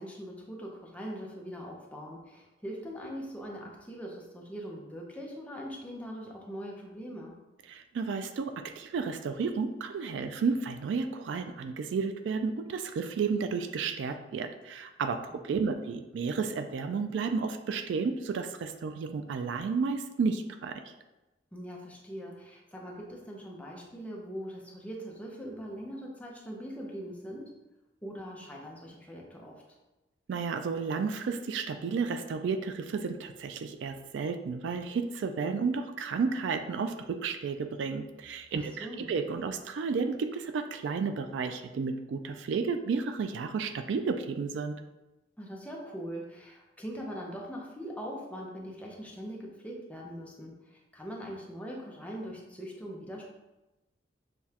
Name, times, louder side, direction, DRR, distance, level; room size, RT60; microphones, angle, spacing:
voice 1, 0.0-7.4 15.5-15.7 21.5-27.5 28.0-29.6 38.5-39.1 45.4-53.3, equal, 10° left, -2 dB, 0.6 m, -41 dB
voice 2, 7.7-20.8 30.3-44.8, right 5 dB, 70° right, 8 dB, 0.3 m, -32 dB
6.6 x 2.2 x 2.8 m, 1.0 s
head